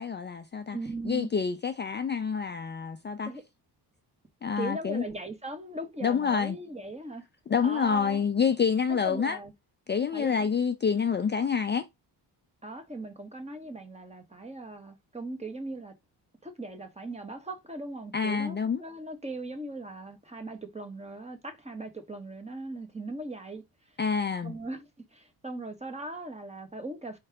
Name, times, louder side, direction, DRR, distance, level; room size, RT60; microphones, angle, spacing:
voice 1, 0.0-0.8 1.1-3.3 4.4-5.0 6.0-6.6 7.5-9.4 9.9-11.9 18.1-18.8 24.0-24.6, left 6 dB, 25° left, 0.5 m, -27 dB
voice 2, 0.7-1.3 3.3-3.4 4.6-7.2 7.6-8.2 8.9-9.5 10.1-10.3 12.6-15.9 16.4-23.6 24.4-27.2, right 2 dB, 15° right, 1.3 m, -39 dB
4.8 x 3.2 x 3.4 m
cardioid pair, 105°, 42 cm